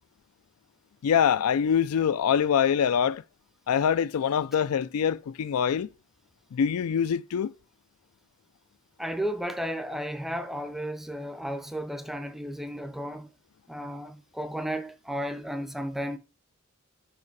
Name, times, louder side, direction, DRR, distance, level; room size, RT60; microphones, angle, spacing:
voice 1, 1.0-3.2 3.7-5.9 6.5-7.5, left 8 dB, 85° left, 0.4 m, -24 dB
voice 2, 9.0-13.3 13.7-16.2, equal, ahead, 0.5 m, -33 dB
5.8 x 4.8 x 4.7 m
head